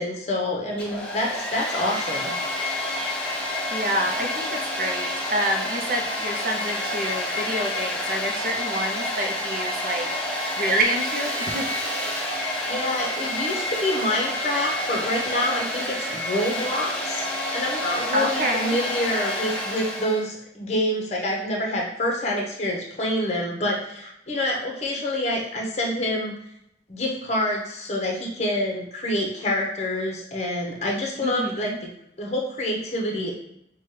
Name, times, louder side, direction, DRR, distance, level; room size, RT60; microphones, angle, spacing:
voice 1, 0.0-2.4 12.7-17.2 17.5-26.3 26.9-31.7 32.2-33.3, left 1 dB, 35° left, -1 dB, 0.8 m, -27 dB
Domestic sounds home sounds, 0.7-20.2, left 1 dB, 5° left, 0.6 m, -29 dB
voice 2, 3.7-10.1 10.6-11.9 18.1-18.7 31.2-31.8, right 1 dB, 45° right, 2 dB, 0.6 m, -28 dB
5.9 x 2.3 x 3.2 m, 0.76 s
head